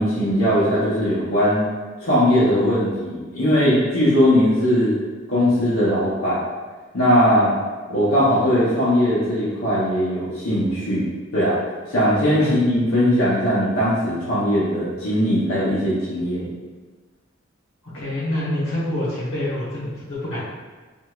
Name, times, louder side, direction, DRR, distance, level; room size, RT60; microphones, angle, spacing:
voice 1, 0.0-1.7 2.0-4.9 5.3-6.4 6.9-7.5 7.9-11.0 11.3-11.6 11.9-16.5, equal, 90° left, -11 dB, 0.8 m, -19 dB
voice 2, 17.9-20.4, left 1 dB, 70° left, -9 dB, 1.2 m, -26 dB
3.0 x 2.6 x 2.4 m, 1.3 s
head